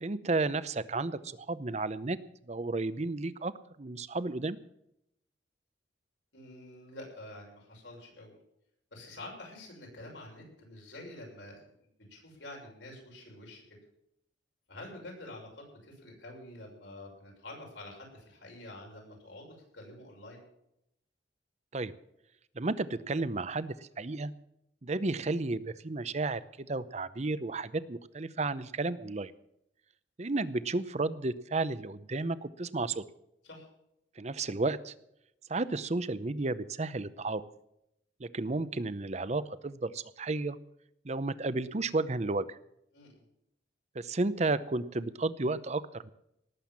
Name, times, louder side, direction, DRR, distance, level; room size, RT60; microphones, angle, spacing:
voice 1, 0.0-2.2 2.5-3.5 3.8-4.6 21.7-21.9 22.6-24.3 24.8-29.3 30.2-33.0 34.2-34.9 35.5-37.4 38.2-40.6 41.0-42.6 43.9-46.1, right 3 dB, 40° right, 16 dB, 0.7 m, -32 dB
voice 2, 6.3-8.4 8.9-11.6 12.0-13.8 14.7-20.4 33.4-33.7 42.9-43.3, left 1 dB, 80° left, -1 dB, 6.5 m, -48 dB
18.5 x 7.8 x 7.3 m, 0.79 s
head